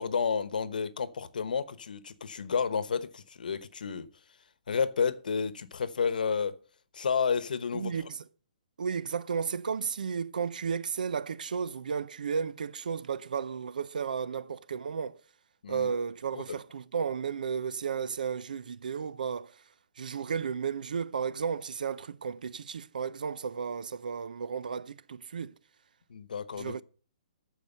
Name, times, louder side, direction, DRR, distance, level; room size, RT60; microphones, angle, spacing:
voice 1, 0.0-4.1 4.7-6.5 6.9-7.9 15.6-15.9 16.3-16.6 26.1-26.7, left 6 dB, 90° left, 1.1 m, -31 dB
voice 2, 7.7-8.2 8.8-15.2 15.7-19.6 20.0-25.6 26.5-26.8, right 6 dB, 80° right, 0.6 m, -33 dB
13.0 x 4.8 x 6.6 m
hypercardioid pair, 180°, 4 cm